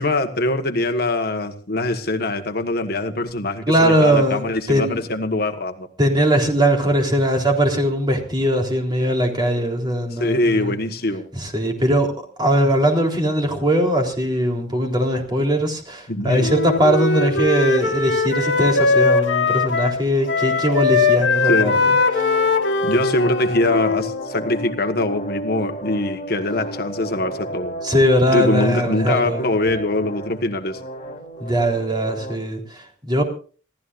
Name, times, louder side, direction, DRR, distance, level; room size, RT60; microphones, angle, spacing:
voice 1, 0.0-5.9 10.1-11.3 16.1-16.5 21.4-21.8 22.8-27.7 28.3-30.8, left 2 dB, 50° left, 1.5 m, -23 dB
voice 2, 3.7-5.0 6.0-10.7 11.4-12.1 12.4-21.8 22.2-22.3 27.8-29.5 31.4-33.2, equal, 20° right, 3.7 m, -20 dB
Wind instrument woodwind instrument, 16.4-20.0 20.3-24.2, left 4 dB, 65° left, 2.1 m, -20 dB
sound 1, 18.4-32.3, equal, 35° left, 3.4 m, -33 dB
27.5 x 16.0 x 2.6 m
head